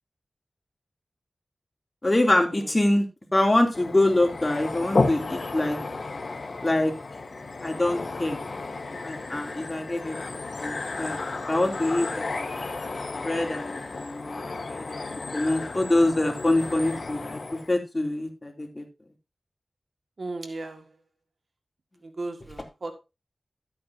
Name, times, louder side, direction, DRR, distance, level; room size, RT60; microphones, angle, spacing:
voice 1, 2.0-3.0 3.3-5.8 6.6-6.9 7.6-8.4 9.0-11.2 11.5-12.5 13.2-14.4 14.7-15.0 15.3-18.8, left 1 dB, 30° left, 2.9 m, -25 dB
sound 1, 3.7-17.7, left 3 dB, 65° left, 1.5 m, -33 dB
voice 2, 20.2-20.9 22.0-23.0, right 2 dB, 65° right, 1.8 m, -36 dB
13.0 x 8.8 x 2.8 m
wide cardioid pair, 70°, 0 cm